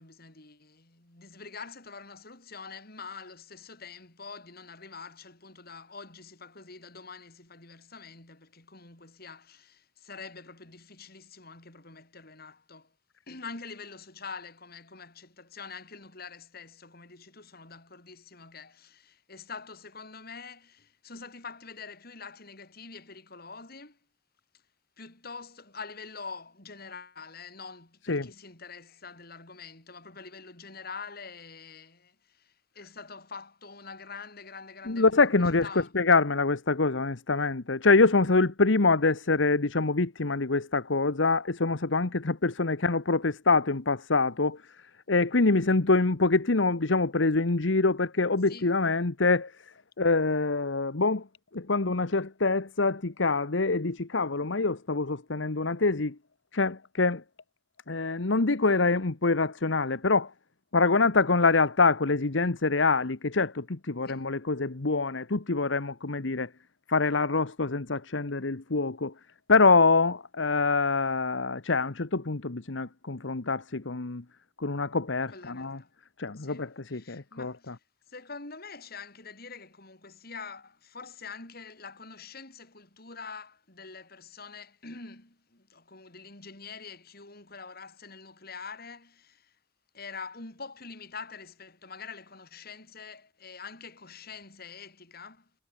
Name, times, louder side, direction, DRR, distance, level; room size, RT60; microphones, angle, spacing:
voice 1, 0.0-12.9 13.3-24.0 25.0-35.1 35.4-35.9 48.5-48.7 64.1-64.3 75.3-75.9 76.4-76.6 76.9-77.8 78.1-89.5 89.9-95.5, left 5 dB, 55° left, 5.2 m, -45 dB
voice 2, 34.9-44.8 45.1-51.3 51.5-56.2 56.5-57.2 57.9-60.3 60.7-66.5 66.9-69.1 69.5-74.2 74.6-75.8 76.2-77.7, left 3 dB, 75° left, 1.2 m, -25 dB
head